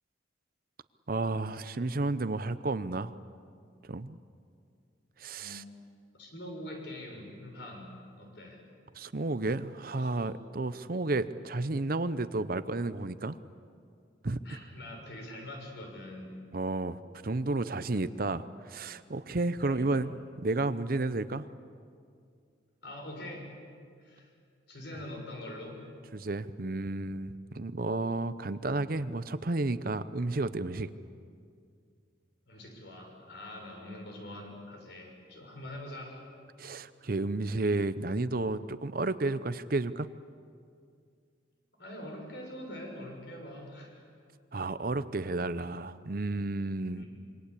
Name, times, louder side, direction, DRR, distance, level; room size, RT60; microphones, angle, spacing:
voice 1, 1.1-3.1 3.9-4.2 5.2-5.6 8.9-13.4 14.2-14.6 16.5-20.1 20.4-21.4 26.1-30.9 36.6-40.1 44.5-47.0, right 2 dB, 50° right, 13 dB, 0.7 m, -32 dB
voice 2, 6.1-7.9 8.2-8.6 10.0-10.1 14.4-16.3 19.6-20.1 22.8-23.6 24.0-24.3 24.7-25.8 32.5-36.2 41.8-44.0 46.9-47.1, left 1 dB, 60° left, 1 dB, 6.7 m, -44 dB
26.5 x 24.0 x 8.4 m, 2.3 s
head